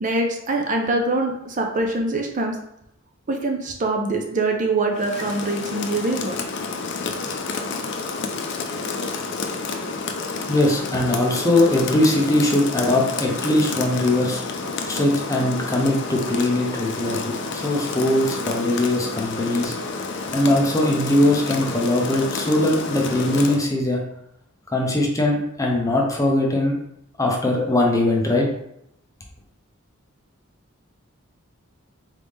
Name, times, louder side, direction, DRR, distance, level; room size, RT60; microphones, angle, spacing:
voice 1, 0.0-2.6 3.3-6.4, right 2 dB, 35° right, 2 dB, 0.5 m, -24 dB
Rain, 5.0-23.7, left 4 dB, 55° left, 0.5 m, -30 dB
voice 2, 10.5-19.8 20.3-24.0 24.7-26.8 27.2-28.5, left 1 dB, 15° left, -1 dB, 0.6 m, -21 dB
4.0 x 3.3 x 3.5 m, 0.77 s
head